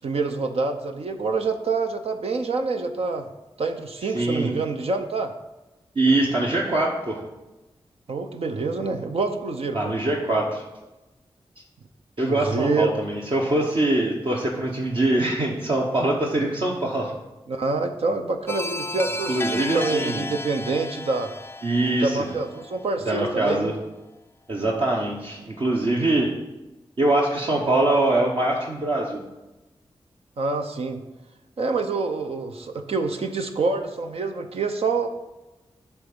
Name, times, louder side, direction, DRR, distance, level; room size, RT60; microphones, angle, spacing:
voice 1, 0.0-3.3 3.6-5.3 8.1-9.9 12.2-12.9 17.5-21.3 21.9-23.7 30.4-31.0 31.6-35.1, right 3 dB, 70° right, 6 dB, 0.7 m, -26 dB
voice 2, 4.1-4.5 5.9-7.2 9.7-10.6 12.2-17.1 19.3-20.2 21.6-22.2 23.1-23.7 24.5-26.3 27.0-29.2, right 2 dB, 55° right, -2 dB, 1.2 m, -23 dB
sound 1, 18.5-23.2, left 2 dB, 20° left, 0.4 m, -33 dB
9.0 x 3.6 x 6.8 m, 1.0 s
cardioid pair, 55°, 11 cm